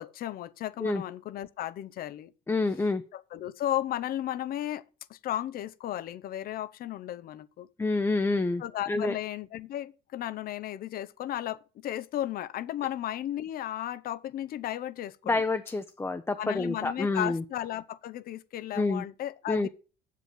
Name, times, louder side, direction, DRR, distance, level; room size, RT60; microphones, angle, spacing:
voice 1, 0.0-2.3 3.1-4.8 5.1-7.7 8.6-15.4 16.4-19.7, left 12 dB, 60° left, 0.6 m, -34 dB
voice 2, 2.5-3.0 7.8-8.6 8.9-9.1 15.3-17.4 18.7-19.1 19.5-19.7, left 3 dB, 15° left, 0.6 m, -27 dB
7.6 x 7.5 x 5.2 m
cardioid pair, 110°, 17 cm